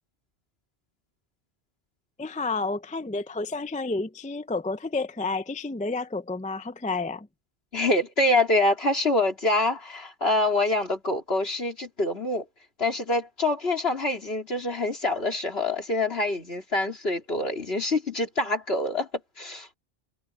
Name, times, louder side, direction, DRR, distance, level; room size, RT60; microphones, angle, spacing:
voice 1, 2.2-7.3, left 3 dB, 10° left, 0.4 m, -30 dB
voice 2, 7.7-12.5 12.8-19.1 19.4-19.7, left 2 dB, 65° left, 3.7 m, -25 dB
omnidirectional pair, 1.1 m